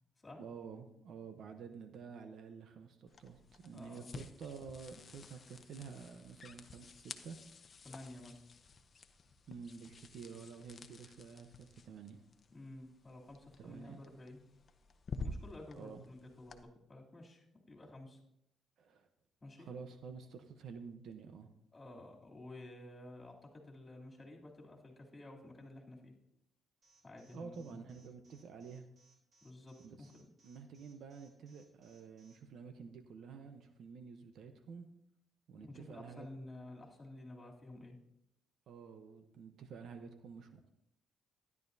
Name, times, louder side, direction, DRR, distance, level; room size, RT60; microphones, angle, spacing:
voice 1, 0.4-7.4 9.5-12.2 13.6-14.0 15.7-16.0 18.8-19.1 19.6-21.5 27.3-28.9 29.8-30.1 30.4-34.9 35.5-36.3 38.7-40.7, right 5 dB, 70° right, 8 dB, 0.9 m, -50 dB
sound 1, 3.1-16.6, left 3 dB, 45° left, 0.8 m, -51 dB
voice 2, 3.7-4.1 7.8-8.4 12.5-14.4 15.2-18.2 19.4-19.7 21.7-26.1 27.0-27.8 29.4-30.3 35.6-38.0, left 2 dB, 25° left, -1 dB, 3.0 m, -52 dB
Alarm, 26.8-32.4, right 4 dB, 45° right, 3.5 m, -69 dB
13.0 x 11.0 x 2.7 m, 0.77 s
cardioid pair, 90°, 0 cm